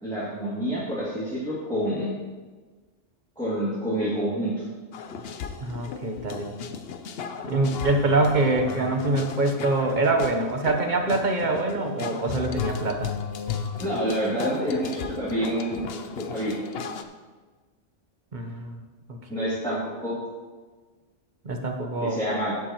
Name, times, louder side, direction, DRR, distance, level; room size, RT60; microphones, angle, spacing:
voice 1, 0.0-2.1 3.4-4.7 13.8-15.8 16.1-16.6 19.3-20.2 22.0-22.5, equal, 5° left, -10 dB, 2.2 m, -28 dB
sound 1, 4.9-17.0, left 6 dB, 60° left, 0.8 m, -35 dB
voice 2, 5.6-6.5 7.4-13.1 18.3-18.8 19.1-19.8 21.4-22.2, right 2 dB, 40° right, 4 dB, 1.0 m, -25 dB
11.5 x 8.2 x 3.0 m, 1.4 s
omnidirectional pair, 1.3 m